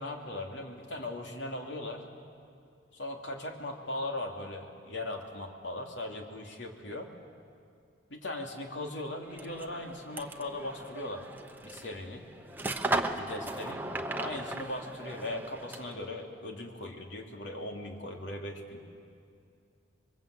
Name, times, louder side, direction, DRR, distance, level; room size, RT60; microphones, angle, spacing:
voice 1, 0.0-2.0 2.9-7.1 8.1-11.2 11.6-12.2 13.2-13.8 14.2-18.8, left 1 dB, 80° left, 2 dB, 2.8 m, -39 dB
sound 1, 9.3-16.1, right 2 dB, 10° right, 0.9 m, -37 dB
27.5 x 22.5 x 8.3 m, 2.4 s
head